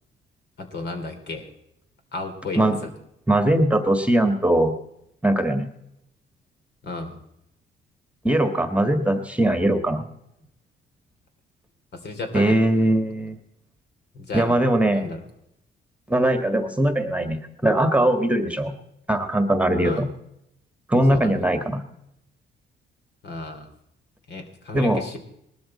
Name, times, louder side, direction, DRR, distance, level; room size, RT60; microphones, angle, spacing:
voice 1, 0.6-1.5 2.1-2.7 6.8-7.2 11.9-12.6 14.1-14.5 14.9-15.2 19.8-20.0 21.1-21.4 23.2-23.7 24.3-25.2, left 3 dB, 60° left, 5 dB, 3.1 m, -33 dB
voice 2, 3.3-4.7 5.2-5.7 8.2-10.0 12.3-13.4 14.3-15.1 16.1-18.7 19.1-20.1 20.9-21.8 24.7-25.0, right 1 dB, 5° right, 7 dB, 1.6 m, -20 dB
19.5 x 12.5 x 4.3 m, 0.79 s
cardioid pair, 90°, 20 cm